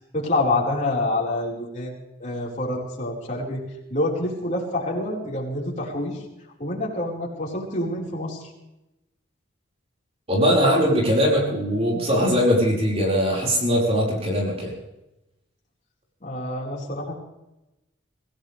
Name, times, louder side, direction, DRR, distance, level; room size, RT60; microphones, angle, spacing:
voice 1, 0.1-1.9 2.2-3.6 3.9-6.2 6.6-8.4 16.2-17.1, left 2 dB, 40° left, -3 dB, 4.7 m, -27 dB
voice 2, 10.3-14.7, equal, 30° right, -2 dB, 5.1 m, -21 dB
26.0 x 16.5 x 3.4 m, 0.93 s
head